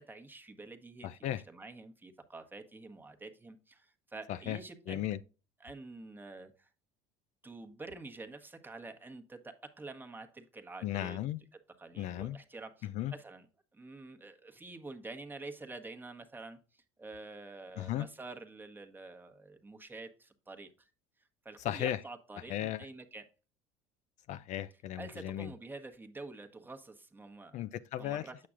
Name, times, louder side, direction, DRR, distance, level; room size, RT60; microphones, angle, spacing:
voice 1, 0.0-5.0 5.6-6.7 7.4-11.2 11.8-13.5 13.7-20.9 21.4-23.2 25.0-27.6 28.0-28.5, right 3 dB, 15° right, 1.1 m, -48 dB
voice 2, 1.0-1.4 4.3-4.6 4.9-5.2 10.8-11.4 12.0-12.4 12.8-13.1 17.8-18.1 21.6-22.0 22.5-22.9 24.3-25.5 27.5-28.5, left 12 dB, 55° left, 0.5 m, -36 dB
8.4 x 5.9 x 2.5 m
supercardioid pair, 85°, 15 cm